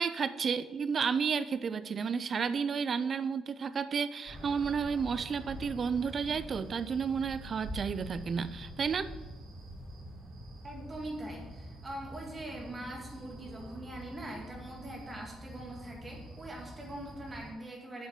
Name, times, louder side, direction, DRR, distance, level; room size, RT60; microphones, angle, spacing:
voice 1, 0.0-9.1, right 6 dB, 40° right, 13 dB, 0.5 m, -32 dB
sound 1, 4.3-17.5, equal, 75° right, 3.1 m, -46 dB
voice 2, 10.6-18.1, right 1 dB, 20° right, 0 dB, 1.9 m, -42 dB
7.6 x 5.7 x 7.3 m, 1.2 s
cardioid pair, 145°, 0 cm